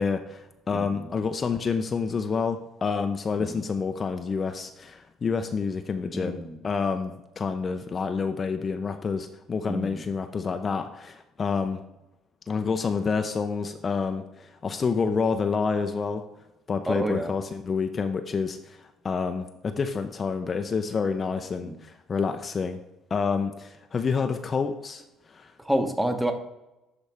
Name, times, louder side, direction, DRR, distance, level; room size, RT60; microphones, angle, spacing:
voice 1, 0.0-6.4 6.6-11.8 12.5-16.2 16.7-22.8 23.1-25.0 25.3-25.5, left 5 dB, 35° left, 7 dB, 0.6 m, -28 dB
voice 2, 0.7-1.1 3.4-3.6 6.1-6.6 9.7-10.0 16.9-17.3 21.6-21.8 25.6-26.3, right 1 dB, 10° right, 6 dB, 1.2 m, -29 dB
11.5 x 4.1 x 3.5 m, 0.93 s
hypercardioid pair, 55°, 0 cm